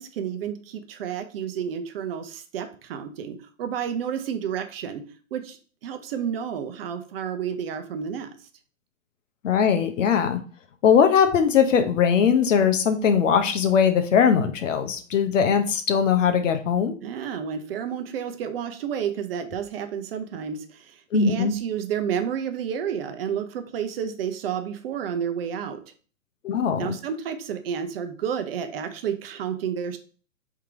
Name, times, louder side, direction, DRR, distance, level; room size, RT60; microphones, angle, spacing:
voice 1, 0.0-5.6 5.8-8.4 17.0-25.8 26.8-30.0, right 8 dB, 45° right, 8 dB, 0.7 m, -31 dB
voice 2, 9.4-10.4 10.8-16.9 21.1-21.5 26.4-26.8, left 7 dB, 70° left, 7 dB, 0.9 m, -20 dB
3.7 x 2.9 x 4.8 m, 0.40 s
hypercardioid pair, 130°, 39 cm